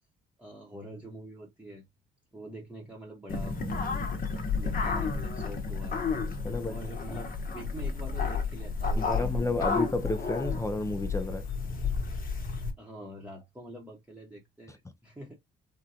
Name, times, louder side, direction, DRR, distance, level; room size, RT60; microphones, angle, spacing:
voice 1, 0.4-1.8 2.3-4.0 4.5-6.1 6.7-9.7 12.8-15.4, equal, 5° right, 0.9 m, -45 dB
sound 1, 3.3-12.7, left 4 dB, 45° left, 1.0 m, -31 dB
voice 2, 6.4-6.8 9.0-11.4, left 2 dB, 15° left, 0.5 m, -31 dB
3.6 x 2.2 x 2.7 m
cardioid pair, 90°, 20 cm